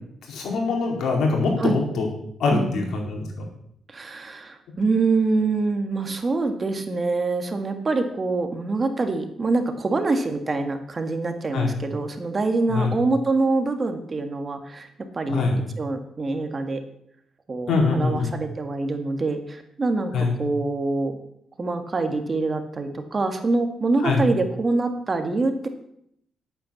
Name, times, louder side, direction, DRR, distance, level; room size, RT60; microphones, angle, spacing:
voice 1, 0.2-2.1 2.4-3.3 11.5-11.7 12.7-12.9 15.3-15.6 17.7-18.3 20.1-20.3 24.0-24.2, left 4 dB, 80° left, 0 dB, 4.3 m, -23 dB
voice 2, 2.5-2.9 3.9-14.9 15.1-15.4 15.8-16.8 17.5-20.1 20.4-21.2 21.6-25.7, right 3 dB, 35° right, 6 dB, 1.9 m, -25 dB
11.5 x 8.9 x 7.2 m, 0.73 s
cardioid pair, 95°, 0 cm